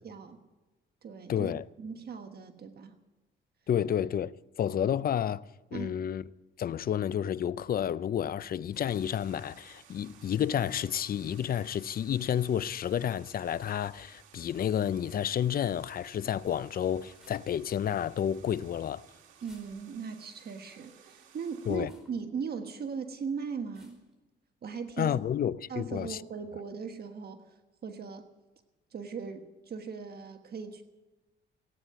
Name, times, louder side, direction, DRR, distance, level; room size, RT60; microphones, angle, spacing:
voice 1, 0.0-0.4 1.0-1.5 1.8-3.0 5.7-6.0 19.4-24.0 24.6-25.2 25.7-28.2 28.9-30.8, right 6 dB, 50° right, 1.3 m, -39 dB
voice 2, 1.3-1.6 3.7-4.3 4.6-5.4 5.7-6.3 6.6-19.1 21.7-21.9 25.0-26.2, left 9 dB, 50° left, 0.5 m, -30 dB
sound 1, 8.6-9.1 10.5-11.0 12.6-13.1 15.0-15.3 17.1-17.8 19.3-20.2 21.7-22.2 23.7-24.1, left 1 dB, 5° right, 4.7 m, -63 dB
sound 2, 8.9-21.8, right 8 dB, 85° right, 2.0 m, -58 dB
17.5 x 9.4 x 8.6 m
cardioid pair, 90°, 20 cm